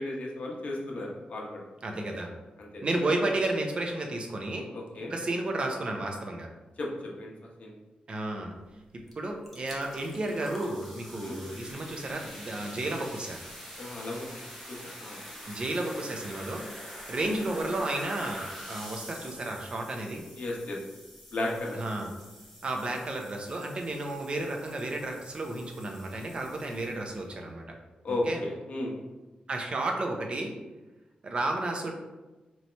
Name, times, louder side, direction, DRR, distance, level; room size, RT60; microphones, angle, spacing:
voice 1, 0.0-1.6 2.6-2.8 4.7-5.1 6.8-6.9 7.2-7.3 7.6-7.7 11.2-11.4 13.8-14.4 14.7-15.2 20.4-20.8 21.3-21.8 28.0-28.9, left 2 dB, 55° left, -1 dB, 0.8 m, -34 dB
voice 2, 1.8-2.3 2.8-4.7 5.1-6.5 8.1-8.6 9.2-13.4 15.5-16.6 17.1-20.2 21.7-22.1 22.6-27.8 28.1-28.4 29.5-30.5 31.2-31.9, right 2 dB, 35° right, 2 dB, 0.5 m, -32 dB
sound 1, 9.1-9.2 9.4-27.2, equal, ahead, 0.8 m, -45 dB
3.0 x 2.7 x 4.3 m, 1.1 s
wide cardioid pair, 165°, 3 cm